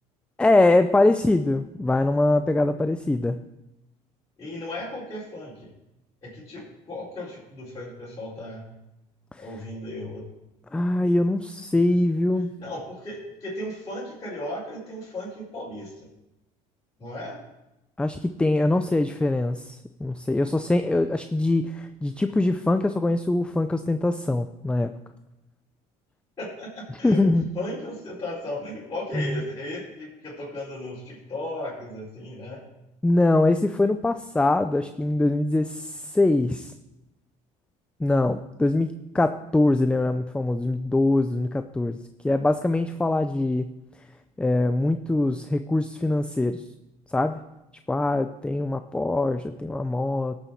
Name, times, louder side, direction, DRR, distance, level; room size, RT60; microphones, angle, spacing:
voice 1, 0.4-3.4 9.3-9.5 10.7-12.5 18.0-24.9 27.0-27.4 29.1-29.4 33.0-36.7 38.0-42.0 42.2-43.7 44.4-46.7 47.1-47.4 47.9-50.4, left 2 dB, 5° left, 9 dB, 0.4 m, -23 dB
voice 2, 4.4-5.7 6.2-8.6 9.4-10.3 12.6-16.1 17.0-17.4 26.4-27.2 27.5-32.6, left 1 dB, 25° left, -9 dB, 4.4 m, -35 dB
16.5 x 7.0 x 4.5 m, 0.94 s
cardioid pair, 110°, 15 cm